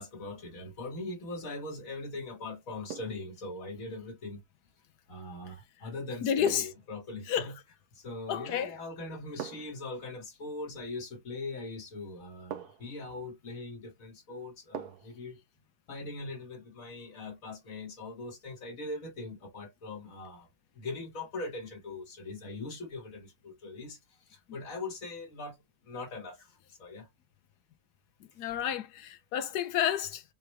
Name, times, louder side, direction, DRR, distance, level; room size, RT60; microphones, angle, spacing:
voice 1, 0.0-4.4 5.1-7.6 8.0-15.4 15.9-20.5 20.8-24.0 24.3-25.6 25.9-26.5 26.8-27.1, left 2 dB, 60° left, 1.8 m, -41 dB
sound 1, 1.3-1.7 2.9-3.3 5.4-5.6 6.5-6.9 8.3-8.6 9.4-9.8 11.5-11.6 12.5-13.0 14.7-15.2 15.6-15.7, right 9 dB, 80° right, 1.1 m, -43 dB
voice 2, 6.2-6.7 7.3-7.5 8.3-8.7 28.4-30.2, left 10 dB, 85° left, 1.3 m, -30 dB
4.8 x 3.2 x 3.2 m
omnidirectional pair, 1.7 m